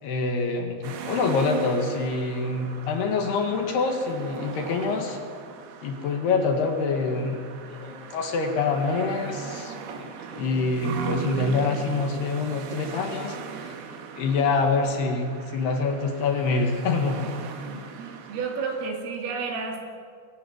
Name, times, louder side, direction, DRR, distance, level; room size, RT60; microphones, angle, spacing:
voice 1, 0.0-5.2 5.8-7.4 7.7-13.8 14.1-17.2, left 4 dB, 60° left, 4 dB, 3.5 m, -26 dB
sound 1, 0.8-18.9, right 6 dB, 60° right, 3.2 m, -38 dB
voice 2, 17.7-19.8, right 5 dB, 85° right, 2 dB, 5.5 m, -32 dB
21.5 x 16.5 x 9.5 m, 2.2 s
omnidirectional pair, 5.7 m